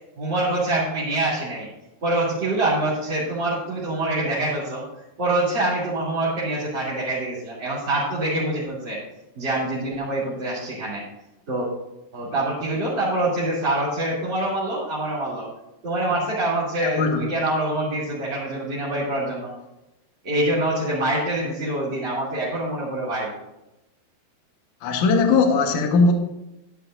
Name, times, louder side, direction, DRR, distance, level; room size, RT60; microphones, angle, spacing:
voice 1, 0.2-1.7 2.0-4.8 5.2-9.0 9.3-11.0 11.5-11.7 12.1-15.5 15.8-19.5 20.2-23.3, right 1 dB, 30° right, -11 dB, 3.0 m, -25 dB
voice 2, 16.8-17.2 24.8-26.1, left 4 dB, 60° left, 3 dB, 2.3 m, -19 dB
12.5 x 11.0 x 2.6 m, 0.93 s
omnidirectional pair, 4.7 m